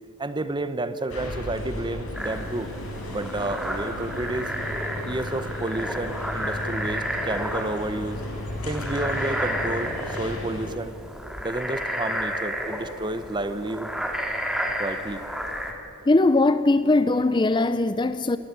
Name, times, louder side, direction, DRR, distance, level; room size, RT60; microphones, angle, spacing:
voice 1, 0.2-2.7 3.1-4.5 5.0-8.2 8.6-10.9 11.4-13.9 14.8-15.2, right 2 dB, 20° right, 0.8 m, -30 dB
sound 1, 1.1-10.7, left 1 dB, 85° left, 4.6 m, -35 dB
sound 2, 2.1-15.7, equal, 5° right, 1.9 m, -32 dB
voice 2, 16.1-18.4, left 2 dB, 20° left, 0.5 m, -20 dB
20.0 x 17.5 x 8.2 m
head